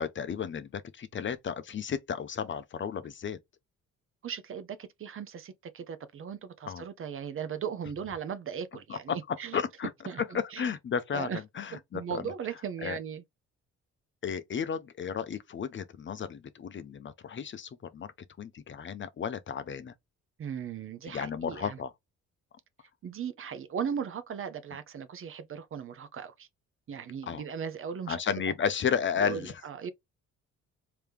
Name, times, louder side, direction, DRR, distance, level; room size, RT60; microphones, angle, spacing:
voice 1, 0.0-3.4 6.7-6.8 8.9-9.9 10.3-12.0 12.8-13.0 14.2-18.1 18.4-19.9 21.0-21.9 27.2-27.4 28.1-29.5, left 7 dB, 40° left, 0.6 m, -33 dB
voice 2, 4.2-9.6 10.1-10.7 11.1-11.4 11.7-13.2 20.4-21.8 23.0-26.5 26.9-28.2 29.2-29.9, right 7 dB, 45° right, 0.6 m, -37 dB
3.3 x 2.9 x 3.4 m
cardioid pair, 90°, 30 cm